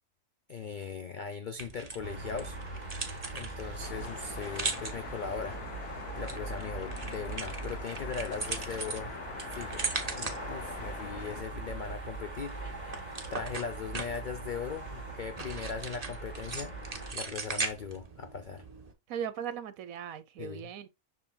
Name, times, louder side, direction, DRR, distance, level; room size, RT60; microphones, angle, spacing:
voice 1, 0.5-2.6 3.3-9.1 9.5-9.9 10.1-18.6 20.4-20.7, left 6 dB, 60° left, 0.5 m, -39 dB
sound 1, 1.6-18.9, right 4 dB, 30° right, 1.0 m, -40 dB
sound 2, 2.0-17.1, right 2 dB, 30° left, 4.9 m, -41 dB
sound 3, 3.8-11.4, left 12 dB, 80° left, 1.1 m, -45 dB
voice 2, 19.1-20.9, right 8 dB, 65° right, 1.2 m, -38 dB
7.3 x 6.1 x 2.2 m
omnidirectional pair, 1.6 m